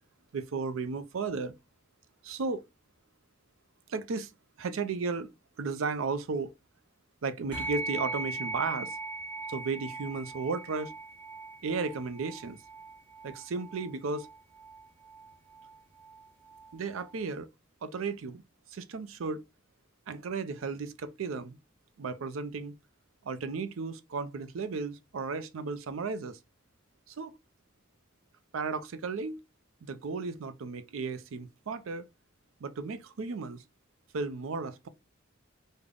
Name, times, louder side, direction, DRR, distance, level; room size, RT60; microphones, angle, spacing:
voice 1, 0.3-1.5 2.2-2.7 3.9-4.3 4.6-5.3 5.6-6.5 7.2-9.0 9.5-10.9 11.6-12.6 13.2-14.3 16.7-17.5 17.8-18.4 18.7-19.4 20.1-21.6 22.0-22.7 23.2-26.4 27.1-27.4 28.5-29.4 29.8-32.1 32.6-33.6 34.1-34.9, right 4 dB, 80° right, 0.5 m, -34 dB
sound 1, 7.5-17.2, right 3 dB, 25° right, 1.3 m, -40 dB
3.4 x 2.1 x 3.6 m
head